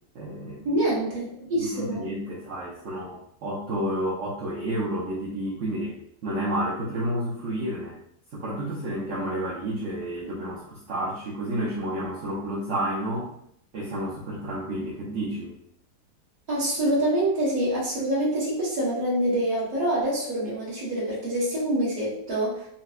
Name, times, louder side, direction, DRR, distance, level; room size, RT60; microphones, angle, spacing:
voice 1, 0.1-0.6 1.6-7.9 8.3-13.3 13.7-15.5, right 1 dB, 60° right, -5 dB, 0.9 m, -30 dB
voice 2, 0.6-2.0 16.5-22.7, right 1 dB, 30° right, -6 dB, 1.0 m, -26 dB
4.1 x 2.2 x 2.4 m, 0.70 s
omnidirectional pair, 1.8 m